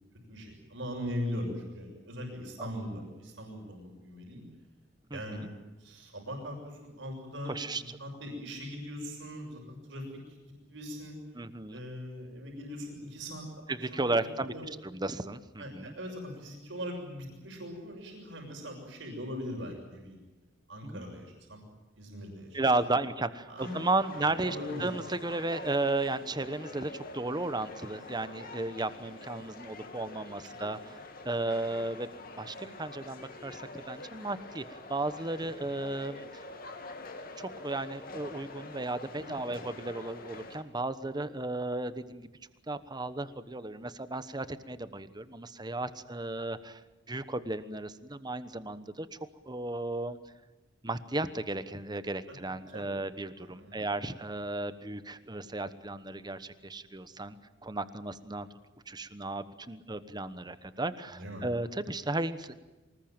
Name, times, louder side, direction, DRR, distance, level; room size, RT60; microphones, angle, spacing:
voice 1, 0.3-4.4 5.1-10.2 10.4-11.1 11.7-13.4 13.8-14.6 15.6-20.2 20.7-21.6 22.0-22.6 23.5-23.8 24.4-24.8 30.5-30.6 39.4-39.6 52.7-52.9 53.4-53.8 61.1-61.4, equal, 70° right, 1 dB, 6.7 m, -40 dB
voice 2, 5.1-5.5 7.5-7.8 11.3-11.8 13.7-14.5 14.8-15.9 20.8-21.0 22.5-33.6 33.9-34.6 34.9-36.4 37.4-42.3 42.7-46.8 47.1-49.2 49.5-50.2 50.8-57.4 57.6-58.5 58.9-62.5, right 2 dB, 20° right, 13 dB, 1.1 m, -34 dB
sound 1, 23.6-40.6, left 2 dB, 50° left, 2.8 m, -46 dB
24.5 x 20.5 x 9.0 m, 1.1 s
head